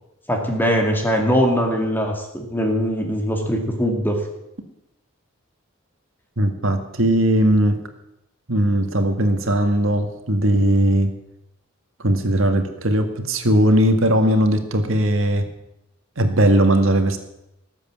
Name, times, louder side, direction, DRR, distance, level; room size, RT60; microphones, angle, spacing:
voice 1, 0.3-4.2, equal, 10° left, 2 dB, 2.1 m, -21 dB
voice 2, 6.4-7.8 8.5-11.1 12.0-15.5 16.2-17.2, right 1 dB, 70° right, 7 dB, 1.9 m, -18 dB
19.0 x 8.2 x 7.5 m, 0.86 s
head